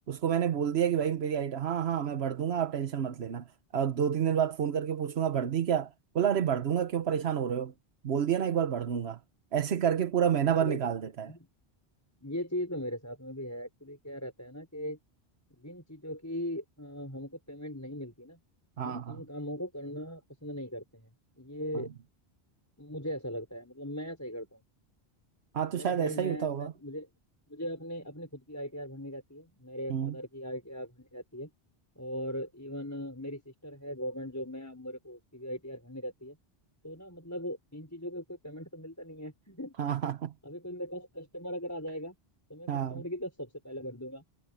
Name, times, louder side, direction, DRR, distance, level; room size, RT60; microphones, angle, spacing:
voice 1, 0.1-3.5 3.7-5.9 6.1-7.7 8.0-9.2 9.5-11.3 18.8-19.2 25.5-26.7 29.9-30.1 39.8-40.3 42.7-43.0, right 8 dB, 75° right, 1.2 m, -29 dB
voice 2, 12.2-15.0 15.5-18.4 18.8-21.9 22.8-24.6 25.7-27.1 27.5-31.5 32.0-36.4 36.8-39.7 40.4-42.2 42.5-44.2, equal, 15° left, 5.5 m, -39 dB
omnidirectional pair, 1.1 m